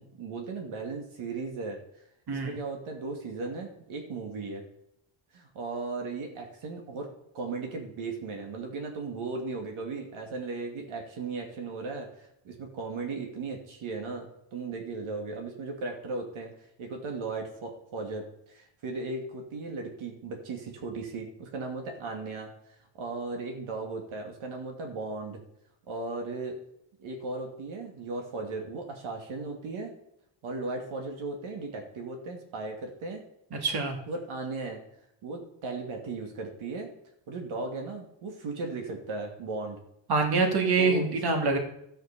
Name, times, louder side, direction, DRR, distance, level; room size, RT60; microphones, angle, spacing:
voice 1, 0.0-1.8 2.3-4.6 5.3-7.1 7.3-16.5 16.8-22.5 22.9-25.4 25.9-26.6 27.0-29.9 30.4-33.2 34.1-34.8 35.2-36.9 37.3-39.8 40.8-41.4, right 3 dB, 70° right, 2 dB, 2.6 m, -36 dB
voice 2, 33.5-34.0 40.1-41.6, right 4 dB, 50° right, 3 dB, 2.5 m, -25 dB
13.5 x 6.5 x 6.8 m, 0.77 s
cardioid pair, 140°, 50 cm